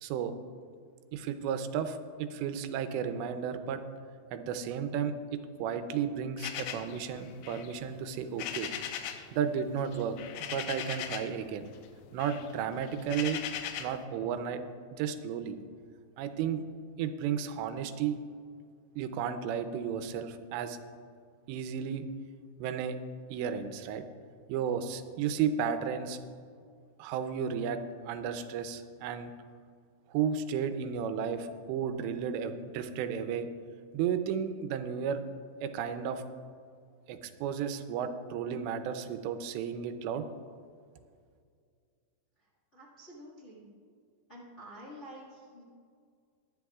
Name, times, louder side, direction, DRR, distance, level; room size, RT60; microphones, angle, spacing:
voice 1, 0.0-0.3 1.1-3.8 4.3-8.7 9.3-10.2 10.5-11.6 12.1-13.4 13.8-14.6 14.9-15.6 16.2-16.6 17.0-18.2 19.0-20.8 21.5-22.0 22.6-23.0 23.3-24.0 24.5-26.2 27.0-27.8 28.1-29.3 30.1-33.5 33.9-35.2 35.6-36.2 37.1-40.2, right 7 dB, 90° right, 9 dB, 3.0 m, -33 dB
sound 1, 6.4-9.3 9.6-11.4 11.7-14.0, left 9 dB, 85° left, 2.8 m, -39 dB
voice 2, 42.7-43.7 44.3-45.6, equal, 45° left, -4 dB, 0.8 m, -49 dB
20.5 x 10.5 x 2.4 m, 2.2 s
omnidirectional pair, 4.9 m